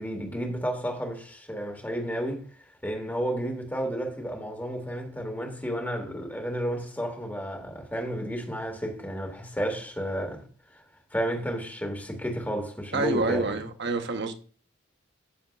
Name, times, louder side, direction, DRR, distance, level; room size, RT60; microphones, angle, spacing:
voice 1, 0.0-2.4 2.8-10.4 10.7-10.8 11.1-13.6, equal, 10° left, 2.1 m, -32 dB
voice 2, 12.9-14.3, right 3 dB, 60° right, 1.1 m, -27 dB
14.0 x 7.2 x 2.5 m
head